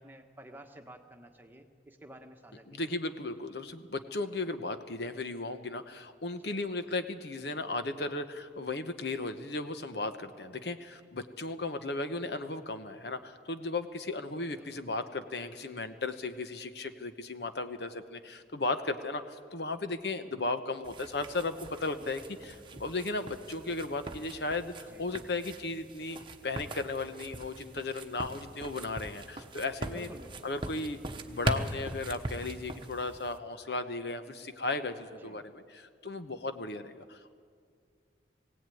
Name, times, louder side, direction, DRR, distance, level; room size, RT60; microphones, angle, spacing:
voice 1, 0.0-2.8 6.4-6.6 14.6-14.8 24.9-25.3 29.9-30.5 35.2-35.4, right 1 dB, 10° right, 3 dB, 1.4 m, -51 dB
voice 2, 2.7-26.2 26.4-30.1 30.4-31.0 31.3-37.3, left 3 dB, 70° left, 9 dB, 1.0 m, -35 dB
sound 1, 20.8-33.4, right 2 dB, 25° right, 1.1 m, -41 dB
19.5 x 17.0 x 9.3 m, 2.1 s
head